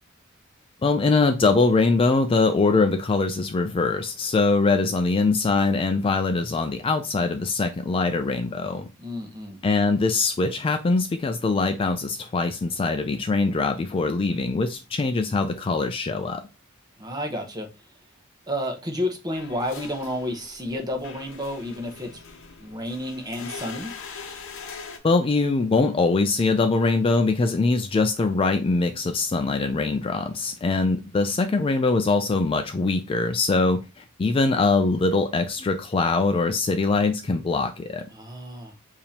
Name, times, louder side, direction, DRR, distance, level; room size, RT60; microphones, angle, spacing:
voice 1, 0.8-8.9 9.6-16.4 25.0-38.0, left 3 dB, 25° left, 0.3 m, -22 dB
voice 2, 9.0-9.6 17.0-17.7 18.5-22.1 22.6-23.9 38.1-38.7, left 1 dB, 20° right, 0.9 m, -31 dB
sound 1, 19.3-25.0, left 5 dB, 65° left, 0.8 m, -41 dB
6.8 x 2.8 x 2.8 m
head